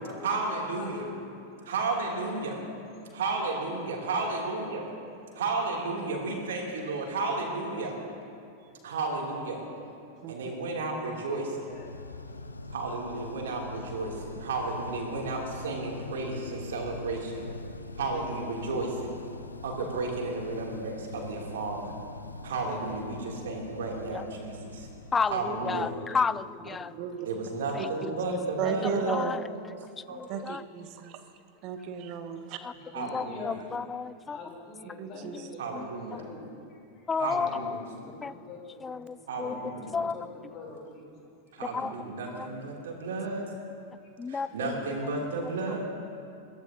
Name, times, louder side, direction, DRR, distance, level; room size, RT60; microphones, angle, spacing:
voice 1, 0.2-1.0 1.6-2.6 3.1-4.8 5.4-7.9 8.8-9.6 10.3-11.7 12.7-17.5 18.0-19.1 19.6-21.9 22.4-24.9 25.3-25.9 27.2-29.2 30.1-30.4 32.9-33.6 35.6-36.3 37.2-37.8 39.3-39.9 41.5-43.5 44.3-45.8, right 3 dB, 60° right, -1 dB, 2.9 m, -33 dB
voice 2, 0.8-1.4 2.3-3.0 11.6-11.9 26.5-26.9 28.6-29.0 32.8-33.5 34.3-35.7 36.1-36.8 38.0-39.3 39.7-40.2 40.5-41.1 41.6-42.0, left 3 dB, 35° left, -1 dB, 3.7 m, -44 dB
voice 3, 10.2-10.6 26.9-27.3 28.0-28.1 28.6-29.4 30.3-31.2 31.6-32.6 35.0-35.5, right 8 dB, 40° right, 8 dB, 1.0 m, -34 dB
sound 1, 11.6-26.7, left 2 dB, 80° left, 0.6 m, -43 dB
voice 4, 25.1-26.9 27.7-28.1 29.1-29.4 30.1-30.6 32.6-34.4 35.2-35.9 37.1-38.3 38.8-40.2 41.7-41.9 42.3-42.5 43.0-43.1 44.2-44.8, left 5 dB, 15° left, 17 dB, 0.3 m, -33 dB
22.5 x 15.5 x 2.8 m, 2.5 s
figure-of-eight pair, 90°, 0 cm